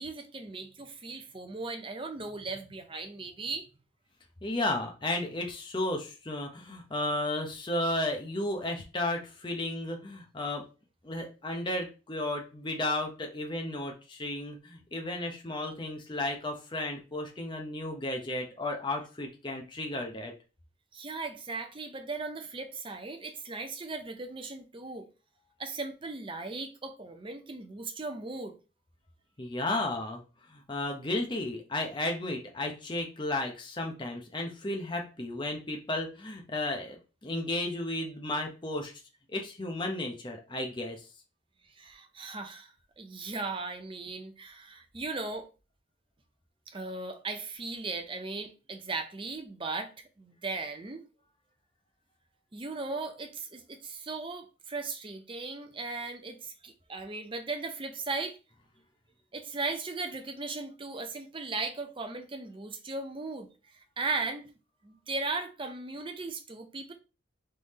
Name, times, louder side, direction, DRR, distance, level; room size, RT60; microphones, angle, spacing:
voice 1, 0.0-3.7 20.9-25.1 25.6-28.6 41.7-45.5 46.7-49.9 50.2-51.0 52.5-58.4 59.3-64.5 64.8-66.9, right 3 dB, 25° right, 0.6 m, -37 dB
voice 2, 4.4-10.6 11.0-20.3 29.4-30.2 30.5-38.9 39.3-41.1, left 1 dB, 20° left, 0.7 m, -33 dB
3.8 x 3.3 x 4.1 m
head